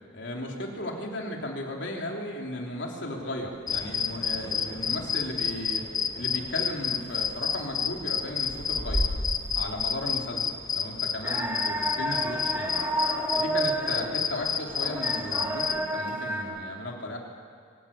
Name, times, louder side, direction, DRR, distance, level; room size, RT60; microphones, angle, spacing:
voice 1, 0.1-5.9 6.1-9.0 9.6-12.7 13.3-17.2, left 1 dB, 70° left, 1 dB, 3.0 m, -35 dB
sound 1, 3.4-3.8 5.5-5.6 6.6-6.7 7.0-7.6 8.1-10.1, equal, 55° right, 6.8 m, -32 dB
sound 2, 3.7-15.9, left 6 dB, 20° left, 0.7 m, -30 dB
sound 3, 11.2-16.4, right 1 dB, 10° right, 2.3 m, -31 dB
24.0 x 17.0 x 7.0 m, 2.1 s
head